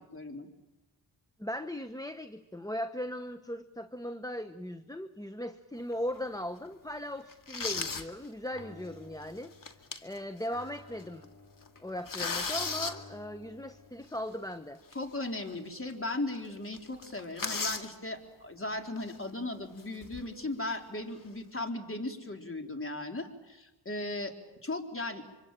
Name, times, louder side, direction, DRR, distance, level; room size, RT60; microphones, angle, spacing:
voice 1, 0.1-0.5 14.9-24.3 24.6-25.2, left 2 dB, 25° left, 4 dB, 3.9 m, -37 dB
voice 2, 1.4-9.5 10.0-11.3 11.8-14.8, left 1 dB, 10° left, 9 dB, 1.0 m, -38 dB
sound 1, 5.9-6.2 6.7-6.8 7.3-8.1 8.5-8.6 9.4-10.2 10.6-10.7 11.0-11.2 11.6-12.9 14.9-15.0 15.5-15.6 15.9-16.0 16.3-16.5 16.7-17.9 19.0-19.2 19.8-20.4, left 4 dB, 45° left, 2.3 m, -35 dB
Guitar, 8.5-10.0 10.5-14.4, left 2 dB, 60° left, 4.4 m, -52 dB
25.5 x 25.5 x 9.0 m, 1.1 s
cardioid pair, 60°, 47 cm